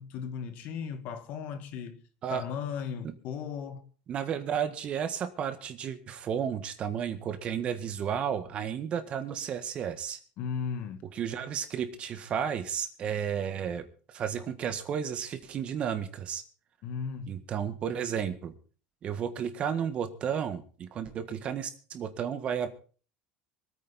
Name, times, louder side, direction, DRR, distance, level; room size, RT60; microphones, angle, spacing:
voice 1, 0.0-2.0 2.3-3.9 10.4-11.0 16.8-17.3, left 6 dB, 55° left, 2.0 m, -36 dB
voice 2, 4.1-10.2 11.1-16.4 17.3-18.5 19.0-22.7, right 8 dB, 35° right, 1.7 m, -33 dB
24.5 x 9.3 x 4.3 m
cardioid pair, 140°, 3 cm